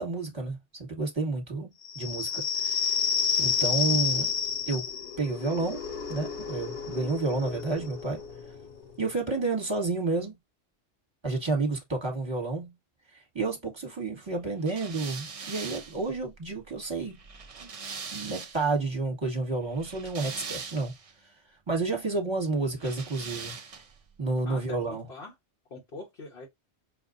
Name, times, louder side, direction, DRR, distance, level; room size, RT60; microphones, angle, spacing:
voice 1, 0.0-3.1 3.4-4.3 4.7-4.8 5.2-5.8 6.1-8.2 9.0-10.3 11.2-12.7 13.1-17.2 17.6-17.7 18.1-20.9 21.2-21.3 21.7-23.5 24.2-25.0, right 3 dB, 25° right, 1.4 m, -30 dB
sound 1, 1.8-9.1, left 6 dB, 85° left, 1.3 m, -30 dB
sound 2, 14.7-18.8 19.7-21.1 22.8-24.0, right 5 dB, 40° right, 0.5 m, -41 dB
voice 2, 24.4-25.3 25.7-26.5, left 3 dB, 55° left, 1.4 m, -43 dB
5.8 x 2.3 x 2.5 m
omnidirectional pair, 1.2 m